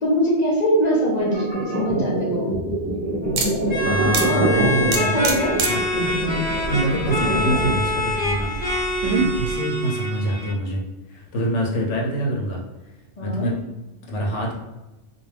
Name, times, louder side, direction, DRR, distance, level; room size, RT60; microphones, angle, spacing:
voice 1, 0.0-2.5 4.2-5.6 13.2-13.5, equal, 50° left, -2 dB, 0.6 m, -23 dB
sound 1, 1.2-7.9, right 1 dB, 20° right, 0.4 m, -25 dB
sound 2, 3.2-9.6, right 4 dB, 80° right, 0.9 m, -28 dB
sound 3, 3.7-10.5, left 1 dB, 10° left, 1.0 m, -26 dB
voice 2, 3.8-5.3 5.7-6.4 6.7-10.8 11.1-12.6 13.2-13.6 14.1-14.6, right 1 dB, 80° left, -2 dB, 1.0 m, -26 dB
2.4 x 2.2 x 3.2 m, 1.0 s
omnidirectional pair, 1.2 m